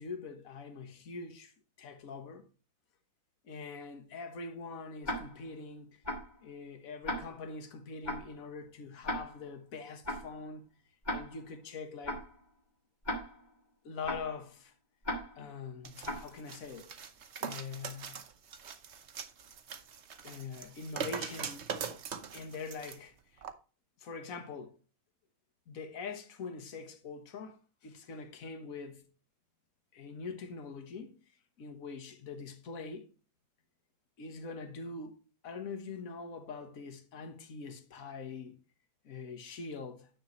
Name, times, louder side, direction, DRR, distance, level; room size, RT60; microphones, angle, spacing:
voice 1, 0.0-2.5 3.4-6.0 6.4-10.6 11.1-12.2 13.8-14.7 15.4-16.9 17.4-18.2 20.2-21.7 22.3-23.4 24.0-24.7 25.7-27.6 27.8-29.1 29.9-31.2 31.6-33.1 34.2-38.6 39.0-40.1, left 4 dB, 45° left, 1.6 m, -43 dB
Tick-tock, 5.0-5.5 6.0-6.4 7.0-7.5 8.0-8.4 9.0-9.5 10.0-10.4 11.0-11.5 12.0-12.4 13.0-13.5 14.0-14.4 15.0-15.5 16.0-16.4, left 1 dB, 25° left, 1.6 m, -38 dB
sound 1, 15.8-23.0 23.4-23.5, right 6 dB, 50° right, 0.8 m, -42 dB
10.0 x 6.9 x 3.1 m
omnidirectional pair, 2.2 m